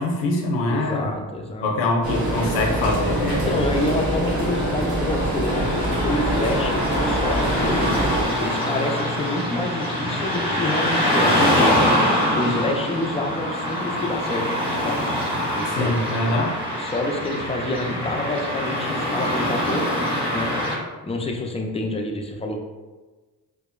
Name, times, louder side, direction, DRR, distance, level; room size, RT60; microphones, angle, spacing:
voice 1, 0.0-1.2 1.6-3.7 15.6-16.6, left 2 dB, 85° left, 1 dB, 0.5 m, -24 dB
voice 2, 0.7-1.7 3.5-7.9 8.4-11.7 12.3-14.5 14.8-15.0 15.5-20.5 21.0-22.6, left 1 dB, 15° left, 2 dB, 0.3 m, -28 dB
sound 1, 2.0-8.2, right 1 dB, 50° right, 0.9 m, -24 dB
Car passing by / Traffic noise roadway noise, 5.4-20.8, equal, 10° right, 1.3 m, -24 dB
2.8 x 2.0 x 2.4 m, 1.2 s
hypercardioid pair, 40°, 46 cm